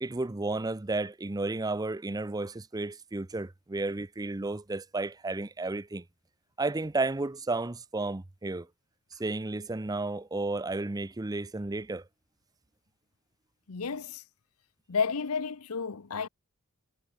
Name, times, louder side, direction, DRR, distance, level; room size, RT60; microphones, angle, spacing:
voice 1, 0.0-6.0 6.6-8.7 9.1-12.0, right 2 dB, 15° right, 0.5 m, -32 dB
voice 2, 13.7-14.2 14.9-16.3, left 5 dB, 80° left, 0.8 m, -31 dB
head